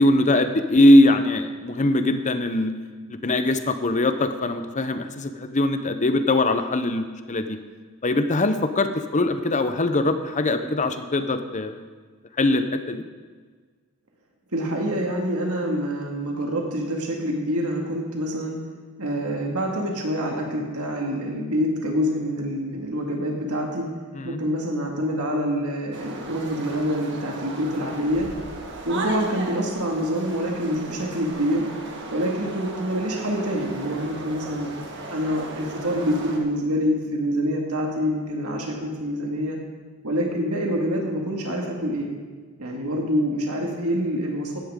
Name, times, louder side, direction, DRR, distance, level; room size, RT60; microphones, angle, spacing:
voice 1, 0.0-2.7 3.1-7.6 8.0-11.8 12.4-13.0 24.1-24.4, left 1 dB, 35° left, 9 dB, 0.7 m, -21 dB
voice 2, 14.5-18.6 19.0-23.9 24.2-28.3 28.9-31.6 32.1-34.7 35.1-39.6 40.0-42.1 42.6-44.6, equal, 80° right, 0 dB, 2.0 m, -26 dB
sound 1, 25.9-36.4, right 2 dB, 55° right, 1.6 m, -36 dB
15.5 x 10.5 x 3.7 m, 1.5 s
head